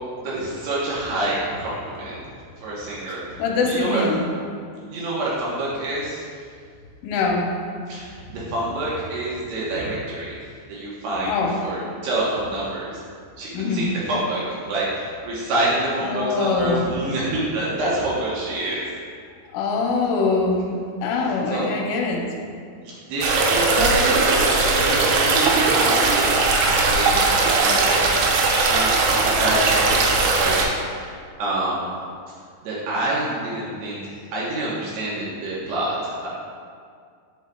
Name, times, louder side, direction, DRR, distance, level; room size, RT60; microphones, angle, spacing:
voice 1, 0.2-2.2 2.6-3.4 3.7-4.0 4.9-6.3 7.9-10.4 10.7-13.0 13.4-18.9 21.5-21.7 22.8-28.3 28.7-28.9 29.2-31.9 32.6-36.3, right 1 dB, 70° right, -7 dB, 2.8 m, -27 dB
voice 2, 3.4-4.2 7.0-7.5 11.3-11.5 13.5-13.9 16.0-16.9 19.5-22.3, left 3 dB, 85° left, 0 dB, 3.1 m, -23 dB
sound 1, 23.2-30.7, right 3 dB, 90° right, 3.4 m, -19 dB
8.6 x 8.3 x 2.3 m, 2.2 s
omnidirectional pair, 5.7 m